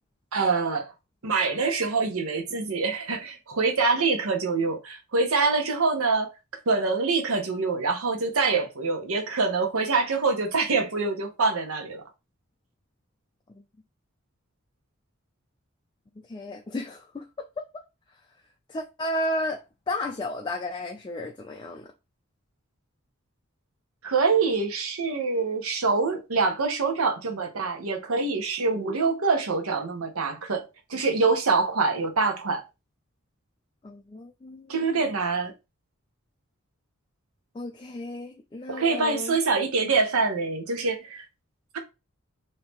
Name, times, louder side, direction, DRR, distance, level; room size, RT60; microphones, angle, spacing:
voice 1, 0.3-0.9 1.2-6.3 6.7-12.0 24.0-30.6 30.9-32.6 34.7-35.5 38.7-41.3 41.7-41.8, right 4 dB, 85° right, 0.9 m, -25 dB
voice 2, 16.3-17.3 17.6-17.8 18.7-21.9 33.8-35.2 37.5-39.3, left 1 dB, 20° left, 0.3 m, -33 dB
3.0 x 2.7 x 3.4 m
head